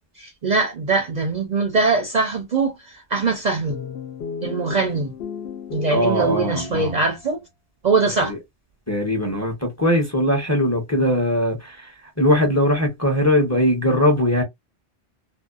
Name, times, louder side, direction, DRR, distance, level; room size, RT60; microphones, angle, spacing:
voice 1, 0.2-3.8 4.4-5.1 5.7-7.4 7.8-8.3, right 4 dB, 50° right, 0.6 m, -22 dB
sound 1, 3.7-7.4, left 6 dB, 70° left, 0.8 m, -34 dB
voice 2, 5.9-7.0 8.2-8.4 8.9-14.4, left 1 dB, 15° left, 0.7 m, -20 dB
2.7 x 2.1 x 2.3 m
omnidirectional pair, 1.1 m